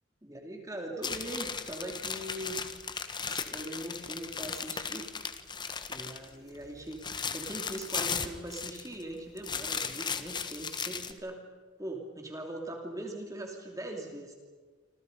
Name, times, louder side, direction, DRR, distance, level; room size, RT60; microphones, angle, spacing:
voice 1, 0.2-2.6 3.3-5.1 5.9-11.4 11.8-14.3, right 1 dB, 15° right, 2 dB, 2.9 m, -41 dB
sound 1, 1.0-6.3 6.6-9.0 9.4-11.1, left 6 dB, 25° left, 1.2 m, -36 dB
29.0 x 26.0 x 5.4 m, 1.4 s
head